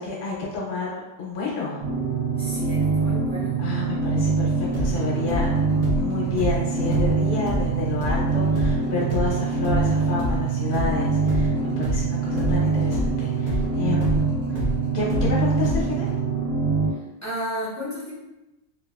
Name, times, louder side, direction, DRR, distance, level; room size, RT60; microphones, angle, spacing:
voice 1, 0.0-1.8 3.6-14.3 14.9-16.1, left 4 dB, 65° left, -4 dB, 0.9 m, -30 dB
sound 1, 1.8-16.9, right 4 dB, 85° right, 1.1 m, -24 dB
voice 2, 2.3-3.6 16.9-18.1, equal, 20° left, -8 dB, 0.5 m, -33 dB
sound 2, 4.7-12.6 12.9-16.1, left 1 dB, 45° right, 0.7 m, -28 dB
2.7 x 2.4 x 2.3 m, 1.0 s
omnidirectional pair, 1.3 m